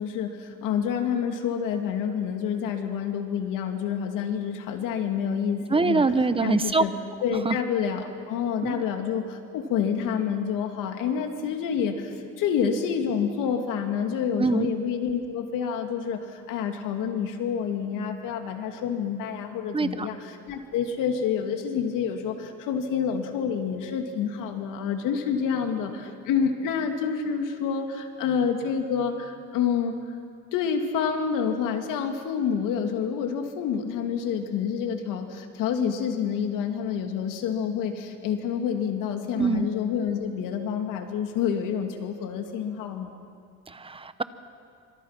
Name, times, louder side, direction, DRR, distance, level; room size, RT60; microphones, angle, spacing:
voice 1, 0.0-6.1 6.4-6.9 7.2-30.0 30.5-43.1, left 7 dB, 85° left, 5 dB, 2.6 m, -28 dB
voice 2, 5.7-6.8 7.4-7.6 8.6-8.8 14.4-14.7 19.7-20.1 39.4-39.7 43.7-44.2, right 4 dB, 15° right, 13 dB, 0.9 m, -24 dB
27.0 x 25.0 x 6.0 m, 2.3 s
cardioid pair, 120°, 31 cm